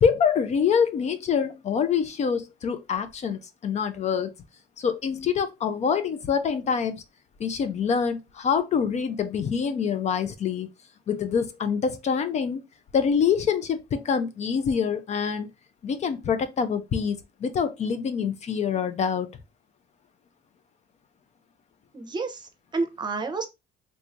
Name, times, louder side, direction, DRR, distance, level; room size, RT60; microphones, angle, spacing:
voice 1, 0.0-4.3 4.8-7.0 7.4-10.7 11.1-12.6 12.9-15.5 15.8-19.3, left 6 dB, 40° left, 0.4 m, -25 dB
voice 2, 21.9-23.5, right 3 dB, 25° right, 0.7 m, -30 dB
3.5 x 3.0 x 2.5 m
cardioid pair, 110°, 17 cm